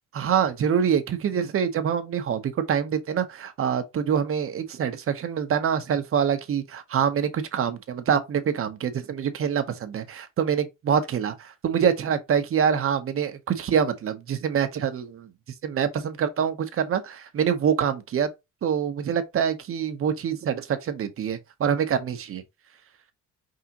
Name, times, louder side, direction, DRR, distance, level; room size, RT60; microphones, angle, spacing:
voice 1, 0.1-15.3 15.6-18.3 18.6-22.4, right 8 dB, 45° right, 0.9 m, -25 dB
4.9 x 3.7 x 2.8 m
cardioid pair, 120°, 31 cm